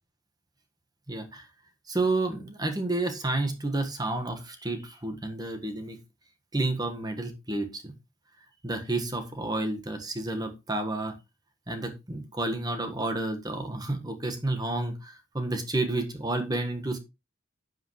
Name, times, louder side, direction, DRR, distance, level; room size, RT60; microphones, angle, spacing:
voice 1, 1.1-1.5 1.9-6.0 6.5-7.9 8.6-11.1 11.7-17.0, right 2 dB, 20° right, 6 dB, 1.5 m, -30 dB
11.5 x 8.0 x 3.2 m, 0.24 s
head